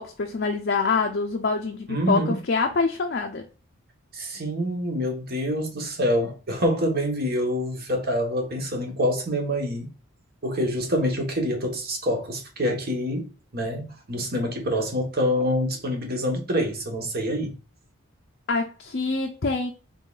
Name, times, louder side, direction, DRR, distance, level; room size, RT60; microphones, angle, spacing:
voice 1, 0.0-3.5 18.5-19.7, left 4 dB, 45° left, 0.5 m, -25 dB
voice 2, 1.9-2.4 4.1-9.9 10.4-17.6, equal, 45° right, 1.1 m, -26 dB
3.8 x 3.7 x 2.3 m
head